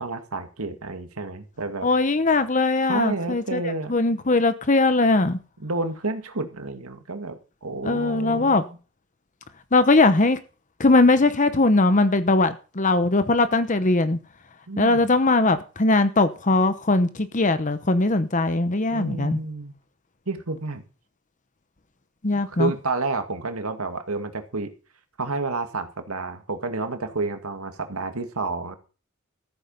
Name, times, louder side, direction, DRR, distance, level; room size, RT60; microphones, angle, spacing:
voice 1, 0.0-1.9 2.9-3.9 5.6-8.8 14.7-15.1 18.9-19.7 20.3-20.8 22.5-24.7 25.2-28.7, right 3 dB, 85° right, 2.0 m, -30 dB
voice 2, 1.8-3.6 3.9-5.4 7.8-8.6 9.7-10.4 10.8-14.2 14.8-19.4 22.2-22.7, left 2 dB, 35° left, 0.9 m, -20 dB
14.0 x 8.9 x 5.6 m
head